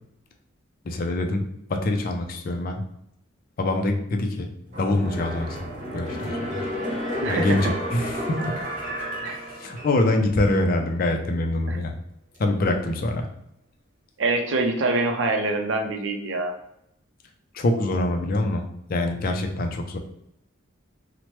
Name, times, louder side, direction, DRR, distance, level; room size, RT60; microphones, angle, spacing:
voice 1, 0.8-1.4 1.7-2.8 3.6-4.5 4.8-5.6 5.9-6.5 7.3-8.5 9.3-11.9 12.4-13.3 17.5-20.0, left 2 dB, 45° left, 5 dB, 0.4 m, -25 dB
sound 1, 4.7-10.2 10.6-10.7, equal, 35° right, 1.2 m, -31 dB
voice 2, 7.2-7.6 9.2-9.4 11.7-11.8 14.2-16.5, right 2 dB, 65° right, 4 dB, 0.5 m, -25 dB
3.0 x 2.1 x 3.0 m, 0.78 s
head